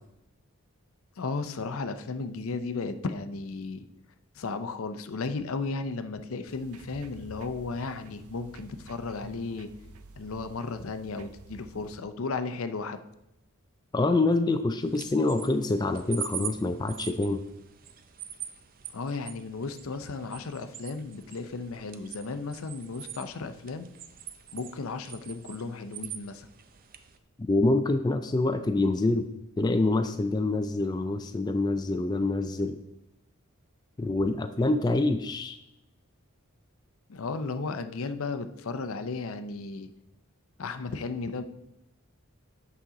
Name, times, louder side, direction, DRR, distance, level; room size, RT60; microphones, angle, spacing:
voice 1, 1.2-3.8 4.3-9.7 10.2-13.0 18.9-23.9 24.5-26.5 37.1-39.9 40.6-41.4, left 4 dB, 70° left, 10 dB, 0.6 m, -34 dB
sound 1, 6.5-12.0, right 3 dB, 85° right, 0.7 m, -50 dB
voice 2, 13.9-17.4 27.5-29.3 29.6-32.8 34.0-35.6, left 2 dB, 20° left, 7 dB, 0.3 m, -26 dB
sound 2, 14.8-27.2, right 9 dB, 40° right, 0.5 m, -43 dB
8.4 x 6.1 x 3.8 m, 0.88 s
head